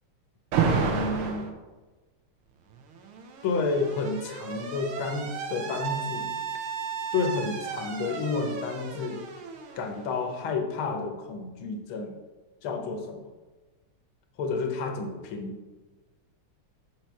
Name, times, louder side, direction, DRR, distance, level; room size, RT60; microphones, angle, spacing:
Alarm, 0.5-1.5 2.7-10.4, right 5 dB, 85° right, 1.7 m, -32 dB
voice 1, 0.7-1.5 3.4-6.3 7.1-9.2 9.7-12.2 12.6-13.3 14.4-15.6, left 4 dB, 75° left, 4 dB, 1.6 m, -30 dB
6.7 x 5.7 x 4.6 m, 1.2 s
omnidirectional pair, 2.3 m